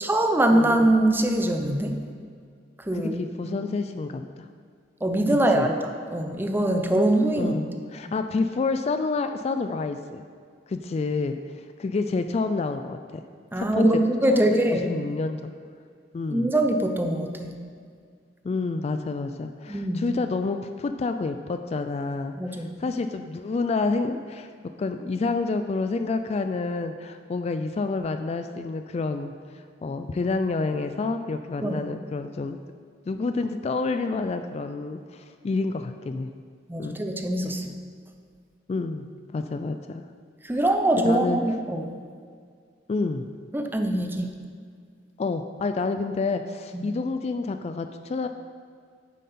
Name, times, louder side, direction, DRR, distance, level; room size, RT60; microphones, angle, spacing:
voice 1, 0.0-2.0 2.8-3.6 5.0-7.6 13.5-14.9 16.3-17.5 19.7-20.0 22.4-22.7 31.6-31.8 36.7-37.7 40.4-41.9 43.5-44.3 46.7-46.8, right 1 dB, 10° right, 4 dB, 0.6 m, -23 dB
voice 2, 2.9-4.5 5.5-5.7 7.4-10.2 10.7-13.0 13.6-14.0 14.3-14.6 14.8-15.5 16.1-16.5 18.4-24.5 24.8-32.6 33.1-36.3 36.8-37.0 38.7-40.0 40.9-41.4 42.9-43.3 45.2-48.3, left 3 dB, 35° left, 8 dB, 0.3 m, -29 dB
9.3 x 7.4 x 4.2 m, 2.1 s
head